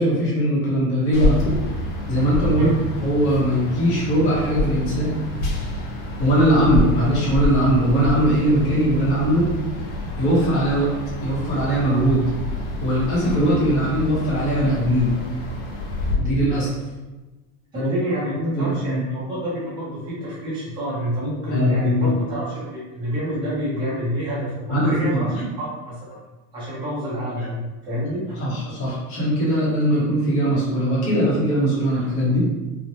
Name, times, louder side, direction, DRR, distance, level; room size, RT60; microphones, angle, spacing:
voice 1, 0.0-1.4 2.1-2.7 3.0-5.2 6.2-9.5 10.2-10.9 11.2-12.2 12.8-15.2 16.1-16.7 17.7-17.9 18.3-19.0 21.5-22.1 24.7-25.5 28.4-32.4, right 1 dB, 25° left, -8 dB, 0.7 m, -20 dB
sound 1, 1.1-16.2, left 2 dB, 70° left, 0.7 m, -28 dB
voice 2, 17.7-26.2 26.5-28.4, equal, 10° right, -9 dB, 0.5 m, -28 dB
3.1 x 2.0 x 2.6 m, 1.1 s
supercardioid pair, 175°, 44 cm